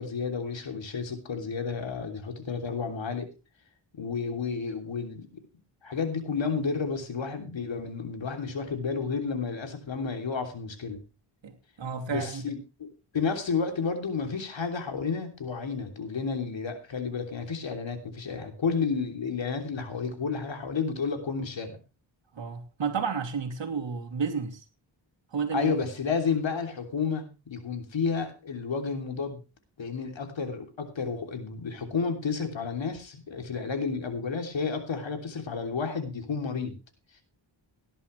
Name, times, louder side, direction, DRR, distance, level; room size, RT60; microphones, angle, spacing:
voice 1, 0.0-3.3 3.9-5.3 5.8-11.0 12.1-21.8 25.5-29.4 29.8-36.8, left 5 dB, 70° left, 3.2 m, -31 dB
voice 2, 11.4-12.5 22.3-24.6 25.3-25.7, right 6 dB, 65° right, 2.8 m, -31 dB
17.5 x 11.0 x 3.2 m
wide cardioid pair, 85°, 47 cm